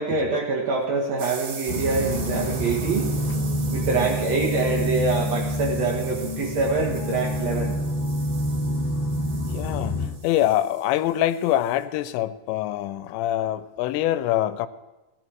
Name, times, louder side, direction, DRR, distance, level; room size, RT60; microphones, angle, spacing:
voice 1, 0.0-3.1 3.7-7.8, right 4 dB, 80° right, -1 dB, 1.5 m, -25 dB
sound 1, 1.2-11.8, right 5 dB, 60° right, 1.8 m, -41 dB
sound 2, 1.7-10.1, equal, 25° left, 0.9 m, -27 dB
voice 2, 9.5-14.7, left 13 dB, 90° left, 14 dB, 2.8 m, -24 dB
16.5 x 12.0 x 4.7 m, 1.1 s
omnidirectional pair, 5.0 m